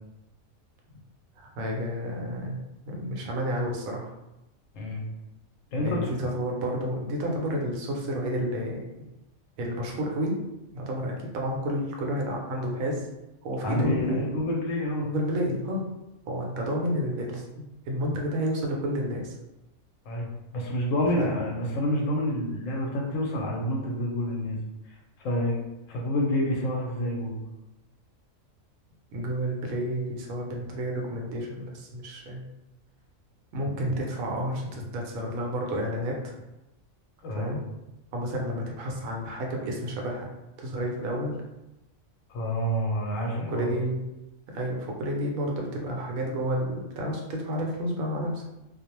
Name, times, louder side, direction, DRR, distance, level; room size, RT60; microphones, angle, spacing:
voice 1, 1.4-2.6 2.9-4.1 5.8-8.8 9.6-10.4 10.7-13.1 13.4-14.3 15.0-15.8 16.3-19.3 21.2-21.4 29.1-32.4 33.5-36.3 37.4-37.6 38.1-40.3 40.6-41.3 43.5-44.0 44.5-48.4, equal, 80° right, 0 dB, 1.0 m, -30 dB
voice 2, 5.7-6.1 13.6-15.1 20.1-24.6 25.2-25.6 25.9-27.4 37.2-37.5 42.3-43.7, equal, 75° left, -1 dB, 0.9 m, -28 dB
2.5 x 2.0 x 2.9 m, 0.95 s
omnidirectional pair, 1.4 m